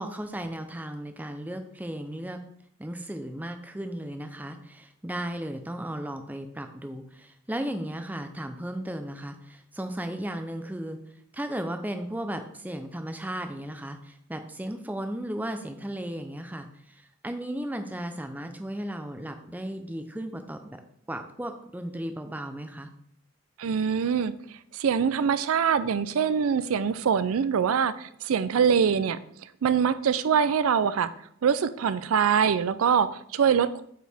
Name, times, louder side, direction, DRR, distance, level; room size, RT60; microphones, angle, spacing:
voice 1, 0.0-2.4 2.8-11.0 11.3-20.8 21.1-22.9, right 1 dB, 10° right, 7 dB, 0.5 m, -35 dB
voice 2, 23.6-24.3 24.7-29.2 29.6-31.1 31.4-33.8, right 7 dB, 85° right, 14 dB, 0.4 m, -24 dB
8.4 x 4.6 x 3.5 m, 0.68 s
head